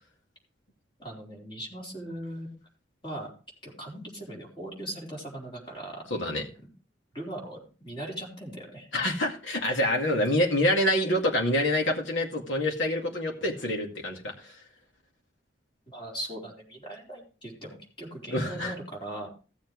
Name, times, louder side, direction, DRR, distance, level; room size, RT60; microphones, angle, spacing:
voice 1, 1.0-2.6 3.0-3.3 3.6-6.0 6.6-6.7 7.1-8.9 15.9-19.3, right 1 dB, 25° left, -3 dB, 4.1 m, -39 dB
voice 2, 6.1-6.4 8.9-14.5 18.3-18.8, left 1 dB, 85° left, 1 dB, 2.2 m, -26 dB
16.0 x 7.3 x 3.2 m, 0.35 s
head